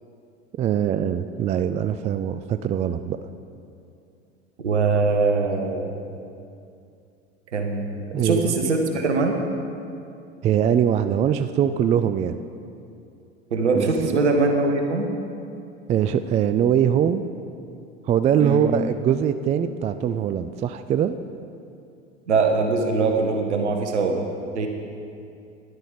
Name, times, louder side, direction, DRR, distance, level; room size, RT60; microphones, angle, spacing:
voice 1, 0.6-3.2 8.1-8.5 10.4-12.4 13.8-13.9 15.9-17.2 18.0-21.2, right 9 dB, 20° right, 10 dB, 0.3 m, -22 dB
voice 2, 4.6-5.9 7.5-9.3 13.5-15.1 18.4-18.6 22.3-24.2 24.5-24.7, right 3 dB, 75° right, 4 dB, 1.4 m, -22 dB
13.0 x 11.5 x 5.1 m, 2.5 s
figure-of-eight pair, 75°, 34 cm